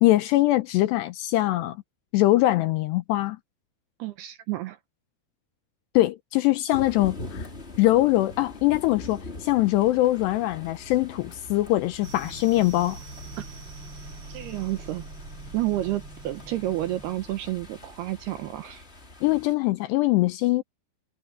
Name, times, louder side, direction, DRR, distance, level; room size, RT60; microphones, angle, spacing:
voice 1, 0.0-1.8 2.1-3.4 5.9-7.5 7.8-13.0 19.2-20.6, left 17 dB, 80° left, 2.5 m, -22 dB
voice 2, 4.0-4.8 14.3-15.1 15.5-18.8, right 15 dB, 75° right, 2.5 m, -30 dB
sound 1, 6.7-19.5, left 2 dB, 20° left, 2.1 m, -43 dB
sound 2, 12.0-19.5, right 2 dB, 25° right, 8.1 m, -44 dB
omnidirectional pair, 5.5 m